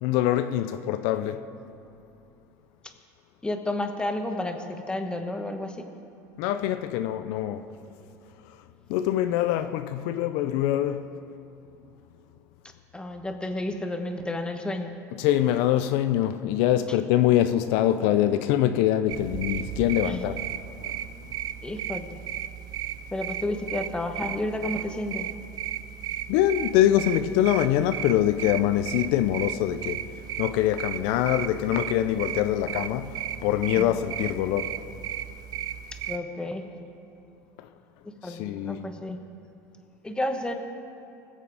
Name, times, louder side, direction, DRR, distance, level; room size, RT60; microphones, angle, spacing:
voice 1, 0.0-1.5 6.4-7.7 8.5-8.6 8.9-11.1 15.2-20.4 20.8-20.9 21.2-21.4 26.3-30.1 30.4-34.8 37.6-37.7 38.2-38.8, left 12 dB, 70° left, 0.5 m, -24 dB
voice 2, 3.4-5.8 12.9-15.0 20.0-20.2 21.6-22.2 23.1-25.3 33.8-33.9 36.1-36.6 38.2-39.2 40.0-40.6, left 1 dB, 10° left, 1.2 m, -31 dB
sound 1, 19.1-36.2, right 11 dB, 50° right, 0.5 m, -35 dB
21.0 x 7.6 x 4.9 m
supercardioid pair, 105°, 9 cm